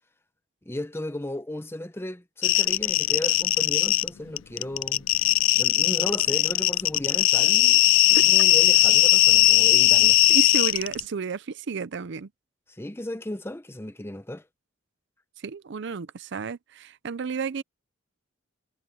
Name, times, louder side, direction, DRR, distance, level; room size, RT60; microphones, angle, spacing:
voice 1, 0.7-5.3 5.5-7.8 8.1-10.2 12.7-14.5, left 1 dB, 10° left, 0.8 m, -35 dB
sound 1, 2.4-4.1 4.4-11.0, left 16 dB, 75° left, 0.4 m, -19 dB
voice 2, 10.3-12.3 15.4-17.6, right 5 dB, 60° right, 0.5 m, -32 dB
head